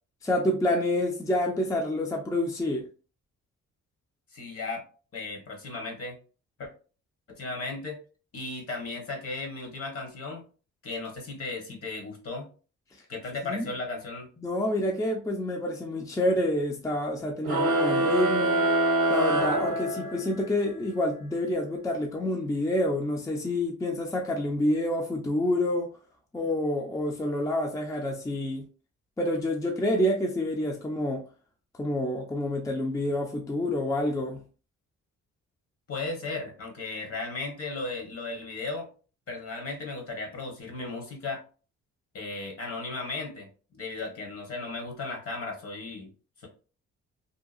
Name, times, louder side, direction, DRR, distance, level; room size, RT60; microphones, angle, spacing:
voice 1, 0.2-2.8 13.4-13.7 14.4-18.6 19.1-25.9 26.3-28.7 29.2-31.2 31.7-34.4, left 1 dB, 10° left, 1 dB, 0.5 m, -28 dB
voice 2, 4.3-4.8 5.1-6.2 6.6-6.7 7.3-8.0 8.3-10.4 10.8-12.5 13.1-14.3 35.9-38.9 39.3-41.4 42.1-46.1, left 3 dB, 50° left, 1 dB, 1.1 m, -35 dB
sound 1, 17.4-20.4, right 2 dB, 50° right, 0.7 m, -25 dB
2.8 x 2.3 x 2.4 m, 0.37 s
cardioid pair, 90°, 30 cm